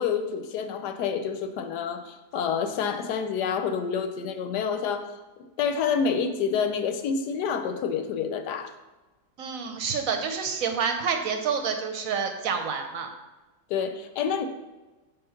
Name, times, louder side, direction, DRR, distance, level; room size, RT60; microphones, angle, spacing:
voice 1, 0.0-5.1 5.4-8.7 13.7-14.5, left 6 dB, 85° left, 8 dB, 1.2 m, -28 dB
voice 2, 9.4-13.1, right 6 dB, 65° right, 5 dB, 1.0 m, -28 dB
5.7 x 3.6 x 5.7 m, 1.1 s
omnidirectional pair, 1.7 m